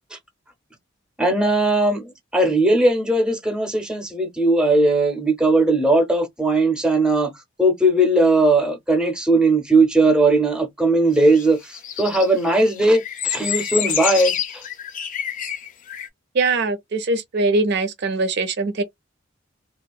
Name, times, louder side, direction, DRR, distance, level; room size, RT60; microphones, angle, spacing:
voice 1, 1.2-7.3 7.6-14.6, right 2 dB, 5° right, 0.6 m, -18 dB
sound 1, 11.3-16.1, left 9 dB, 40° left, 0.5 m, -27 dB
voice 2, 16.3-18.8, right 3 dB, 55° right, 0.5 m, -22 dB
2.7 x 2.3 x 2.2 m
head